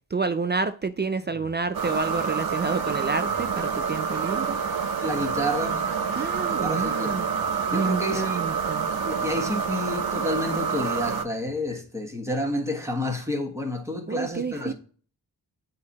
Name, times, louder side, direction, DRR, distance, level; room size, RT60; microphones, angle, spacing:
voice 1, 0.1-4.6 6.1-7.3 7.7-8.9 14.1-14.7, right 4 dB, 25° right, 0.4 m, -29 dB
sound 1, 1.1-2.0 3.1-3.8 5.0-5.8 7.0-8.0 9.1-9.6 11.2-11.9, left 2 dB, 80° left, 1.6 m, -52 dB
sound 2, 1.7-11.2, right 6 dB, 55° right, 0.7 m, -27 dB
voice 2, 5.0-5.9 6.6-7.2 7.7-8.5 9.0-14.7, left 1 dB, 5° right, 1.4 m, -29 dB
8.1 x 2.8 x 4.1 m
cardioid pair, 45°, 45 cm